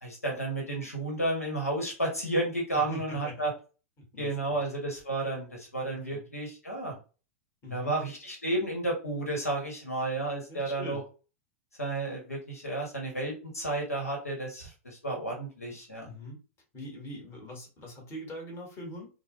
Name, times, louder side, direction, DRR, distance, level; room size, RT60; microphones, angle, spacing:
voice 1, 0.0-3.5 4.2-7.0 7.7-11.0 11.8-16.1, right 2 dB, 90° left, 0 dB, 1.2 m, -32 dB
voice 2, 2.7-3.4 4.0-4.6 5.9-6.2 7.6-7.9 10.5-11.0 16.0-16.4 16.7-19.1, equal, 30° left, 0 dB, 1.6 m, -42 dB
3.1 x 2.2 x 3.0 m, 0.34 s
figure-of-eight pair, 95°, 8 cm